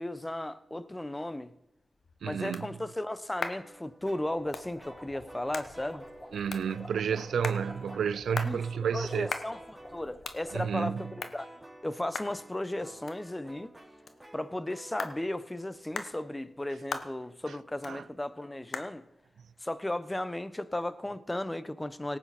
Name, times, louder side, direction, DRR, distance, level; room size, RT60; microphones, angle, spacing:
voice 1, 0.0-1.5 2.2-6.0 8.4-8.6 8.9-11.5 11.8-13.7 14.3-19.1 19.6-22.2, left 1 dB, 20° left, 1.0 m, -35 dB
sound 1, 1.6-20.9, left 4 dB, 70° left, 1.1 m, -44 dB
voice 2, 2.2-2.7 6.3-9.3 10.5-11.1 17.8-18.0, right 7 dB, 80° right, 0.3 m, -31 dB
sound 2, 3.6-6.4 6.7-8.2 8.6-10.0 10.5-17.5, right 1 dB, 5° right, 3.1 m, -52 dB
sound 3, 4.0-10.9, left 1 dB, 40° left, 6.1 m, -49 dB
18.0 x 8.8 x 4.4 m
supercardioid pair, 40°, 0 cm